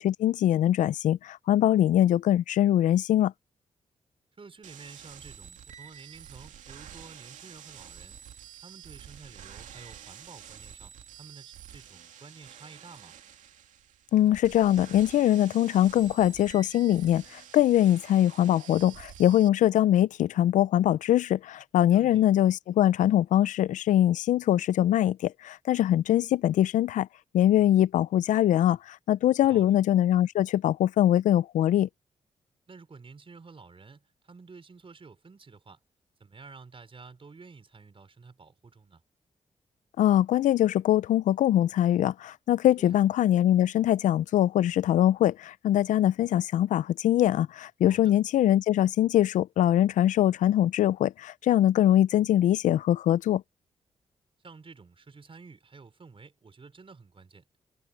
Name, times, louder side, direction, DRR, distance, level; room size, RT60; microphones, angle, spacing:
voice 1, 0.0-3.3 14.1-27.1 27.3-31.9 40.0-53.4, left 12 dB, 80° left, 0.5 m, -23 dB
voice 2, 4.4-8.2 8.6-13.2 21.9-22.3 29.4-29.8 32.7-35.8 36.2-39.0 42.8-43.0 47.9-48.1 54.4-57.4, right 4 dB, 45° right, 5.0 m, -50 dB
sound 1, 4.6-19.5, right 9 dB, 80° right, 2.6 m, -48 dB
supercardioid pair, 45°, 13 cm